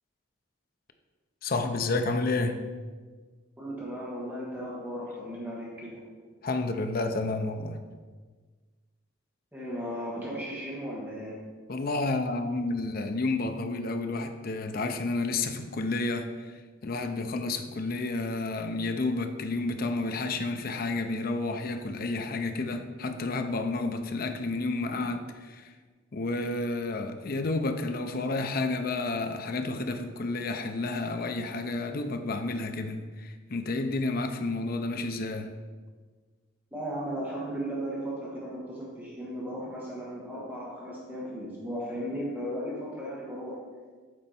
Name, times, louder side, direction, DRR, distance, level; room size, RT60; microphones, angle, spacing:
voice 1, 1.4-2.6 6.4-7.8 11.7-25.7 26.1-35.5, left 3 dB, 45° left, 0.5 m, -30 dB
voice 2, 3.6-6.0 9.5-11.4 36.7-43.6, equal, 10° right, 1.2 m, -36 dB
7.6 x 4.4 x 4.1 m
head